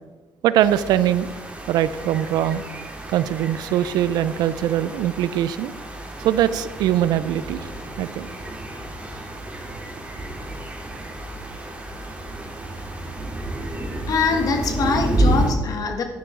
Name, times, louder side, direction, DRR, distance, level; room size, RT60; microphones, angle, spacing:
voice 1, 0.4-1.3 1.7-2.6 3.1-5.7 6.2-7.7 8.0-8.3, right 11 dB, 75° right, 0.5 m, -21 dB
sound 1, 0.6-15.5, right 1 dB, 20° right, 2.6 m, -30 dB
voice 2, 14.1-16.0, left 4 dB, 60° left, 1.7 m, -23 dB
11.0 x 9.1 x 3.8 m
supercardioid pair, 70°, 7 cm